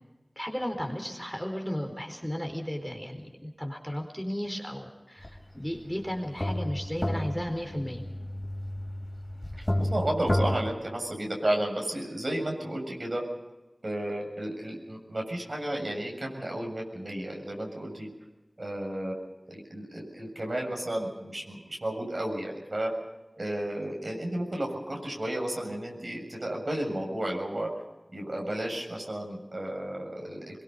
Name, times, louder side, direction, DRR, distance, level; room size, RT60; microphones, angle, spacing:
voice 1, 0.4-8.0, equal, 5° left, 3 dB, 4.3 m, -34 dB
sound 1, 5.2-5.4 5.8-10.6, left 1 dB, 35° left, 5.2 m, -31 dB
voice 2, 9.6-13.2 13.8-18.1 18.6-19.2 19.5-22.9 23.4-27.7 28.1-30.6, right 1 dB, 65° right, 1 dB, 7.2 m, -33 dB
24.5 x 22.5 x 5.4 m, 1.1 s
wide cardioid pair, 40°, 0 cm